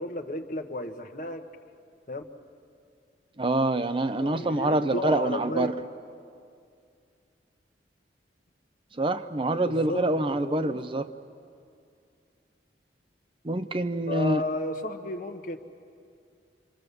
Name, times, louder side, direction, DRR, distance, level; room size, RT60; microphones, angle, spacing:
voice 1, 0.0-1.4 2.1-2.2 4.2-5.7 9.7-10.0 10.4-10.8 14.1-15.6, left 2 dB, 45° left, 7 dB, 1.2 m, -33 dB
voice 2, 3.4-5.7 8.9-11.1 13.4-14.4, right 2 dB, 30° right, 10 dB, 0.6 m, -26 dB
27.0 x 25.0 x 6.9 m, 2.4 s
head